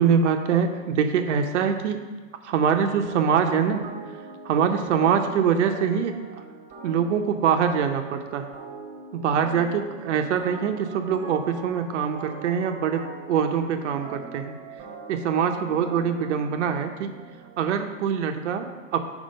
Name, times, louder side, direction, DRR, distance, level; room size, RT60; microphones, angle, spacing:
voice 1, 0.0-2.0 2.4-3.8 4.4-6.2 6.8-8.5 9.1-14.6 15.1-17.1 17.6-19.1, right 7 dB, 60° right, 6 dB, 0.7 m, -24 dB
sound 1, 3.0-17.7, right 4 dB, 25° right, 1.1 m, -42 dB
5.4 x 4.8 x 5.2 m, 1.4 s
hypercardioid pair, 135°, 40 cm